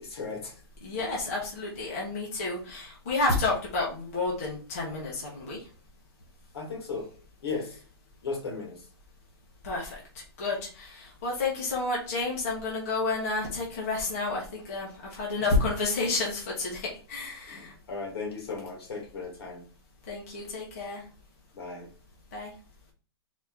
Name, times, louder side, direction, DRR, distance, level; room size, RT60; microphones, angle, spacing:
voice 1, 0.0-0.6 6.5-7.1 7.4-7.8 8.2-8.8 17.5-19.6 21.5-21.9, left 4 dB, 70° left, 1.8 m, -36 dB
voice 2, 0.8-5.6 9.6-10.0 10.4-17.7 20.1-21.0 22.3-22.5, left 3 dB, 35° left, 1.2 m, -30 dB
4.3 x 2.9 x 3.6 m
hypercardioid pair, 180°, 14 cm